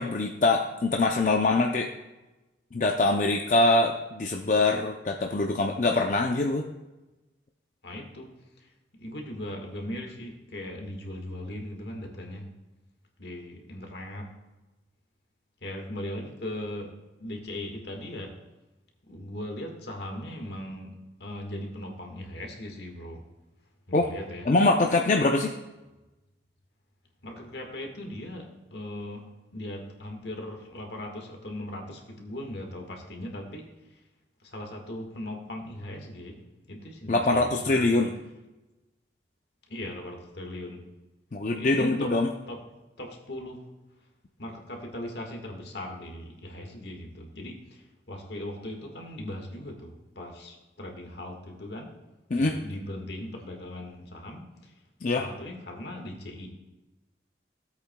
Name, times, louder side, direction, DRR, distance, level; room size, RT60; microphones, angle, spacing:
voice 1, 0.0-1.9 2.7-6.6 23.9-24.1 24.5-25.5 37.1-38.1 41.3-42.3 52.3-52.6 55.0-55.2, left 2 dB, 45° left, 2 dB, 0.5 m, -24 dB
voice 2, 7.8-8.3 9.0-12.5 13.2-14.3 15.6-16.9 17.2-18.3 19.1-20.9 21.2-23.2 23.9-24.5 27.2-29.2 29.5-33.7 34.5-36.4 36.7-38.1 39.7-40.8 41.5-42.1 42.5-42.6 43.0-43.6 44.4-47.8 48.1-51.9 52.3-54.5 55.1-56.5, left 1 dB, 70° left, 2 dB, 1.6 m, -38 dB
16.5 x 8.2 x 2.2 m, 1.1 s
head